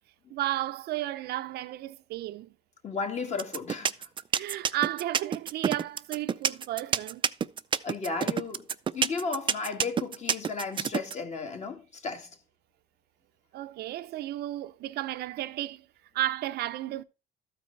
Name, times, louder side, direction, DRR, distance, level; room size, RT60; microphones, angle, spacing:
voice 1, 0.3-2.6 4.3-7.2 13.5-15.9 16.1-17.0, right 14 dB, 75° right, 0.6 m, -33 dB
voice 2, 2.8-4.1 7.8-12.4, left 4 dB, 40° left, 2.1 m, -34 dB
sound 1, 3.4-11.1, right 7 dB, 30° right, 0.4 m, -27 dB
13.0 x 4.7 x 3.9 m
cardioid pair, 110°, 17 cm